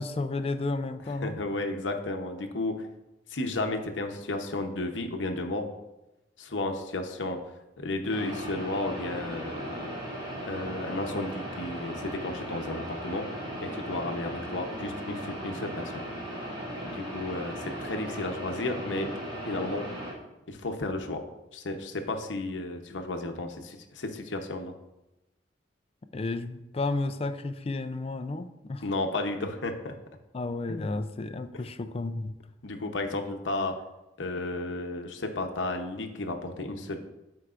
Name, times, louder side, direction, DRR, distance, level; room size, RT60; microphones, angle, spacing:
voice 1, 0.0-1.4 26.1-28.8 30.3-32.3, left 2 dB, 35° left, 10 dB, 0.4 m, -32 dB
voice 2, 1.2-2.9 3.3-5.7 6.4-7.4 7.8-9.9 10.5-13.3 13.6-15.9 16.9-19.1 19.4-19.9 20.5-21.2 21.5-24.7 28.8-30.0 30.7-30.9 32.6-33.8 34.2-37.0, left 2 dB, 75° left, 5 dB, 0.9 m, -33 dB
sound 1, 8.1-20.1, right 1 dB, 25° right, 2.3 m, -37 dB
13.5 x 4.6 x 2.5 m, 0.97 s
head